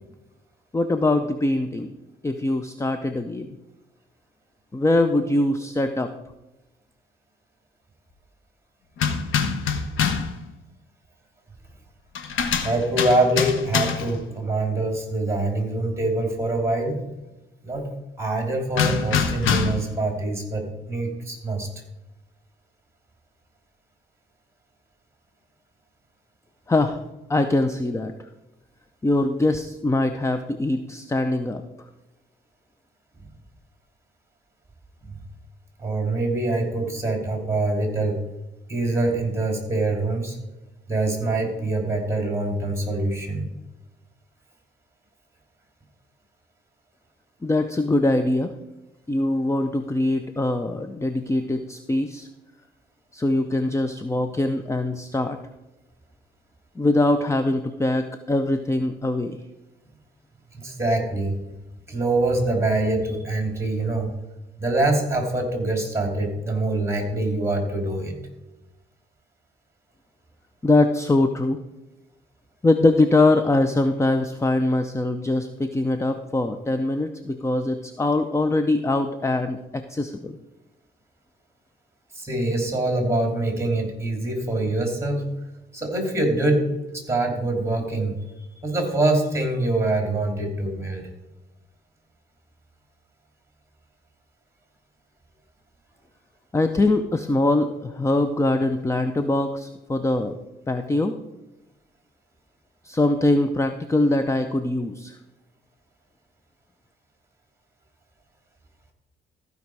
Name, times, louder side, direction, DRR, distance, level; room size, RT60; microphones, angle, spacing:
voice 1, 0.7-1.9 2.2-3.5 4.7-6.1 26.7-27.0 27.3-28.1 29.0-31.6 47.4-48.5 49.1-52.3 53.1-55.4 56.8-59.4 70.6-71.6 72.6-80.3 96.5-100.4 100.7-101.1 102.8-105.2, left 2 dB, 15° left, 8 dB, 0.6 m, -22 dB
sound 1, 9.0-10.4 12.1-14.2 18.7-19.9, left 6 dB, 85° left, 1.1 m, -24 dB
voice 2, 12.6-17.0 17.6-17.9 18.2-21.7 35.8-38.2 38.7-40.4 40.9-43.5 60.5-61.4 61.9-64.1 64.6-68.2 82.1-85.3 85.7-86.7 87.1-88.2 88.6-91.1, right 2 dB, 15° right, 3 dB, 3.0 m, -24 dB
14.5 x 5.3 x 4.7 m, 1.0 s
cardioid pair, 90°, 20 cm